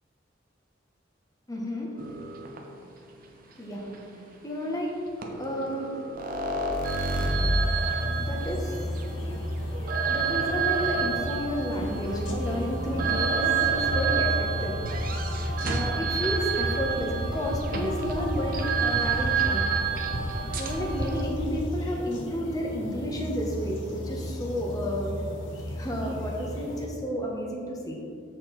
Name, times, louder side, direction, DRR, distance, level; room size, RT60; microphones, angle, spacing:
voice 1, 1.5-2.0 2.4-2.9 3.4-6.1 7.5-9.5 10.0-14.8 15.6-19.6 20.6-25.1 25.8-28.0, equal, 20° left, -1 dB, 1.3 m, -32 dB
sound 1, 2.0-2.6 3.9-4.0 5.2-21.2, right 4 dB, 50° right, 0.9 m, -29 dB
sound 2, 7.1-26.9, left 1 dB, 80° left, 1.0 m, -34 dB
7.8 x 6.6 x 4.3 m, 2.3 s
head